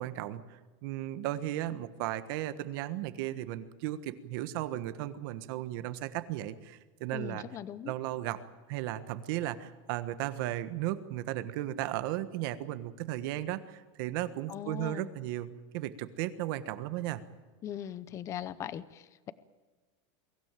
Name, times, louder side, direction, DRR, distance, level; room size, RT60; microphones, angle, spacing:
voice 1, 0.0-7.4 7.8-8.4 8.7-15.5 15.7-17.2, right 14 dB, 45° right, 13 dB, 1.4 m, -35 dB
voice 2, 7.1-7.9 14.5-15.1 17.6-19.3, left 10 dB, 20° left, 16 dB, 0.6 m, -40 dB
23.0 x 16.0 x 9.1 m, 1.3 s
supercardioid pair, 175°, 16 cm